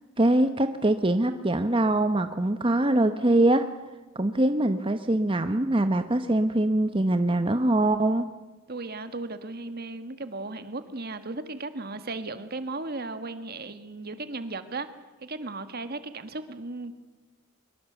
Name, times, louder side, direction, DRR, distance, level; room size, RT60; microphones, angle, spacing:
voice 1, 0.2-3.7 4.1-8.2, right 1 dB, 25° right, 9 dB, 0.9 m, -23 dB
voice 2, 8.7-14.9 15.2-16.9, right 3 dB, 45° right, 10 dB, 1.8 m, -36 dB
23.5 x 22.5 x 8.1 m, 1.2 s
head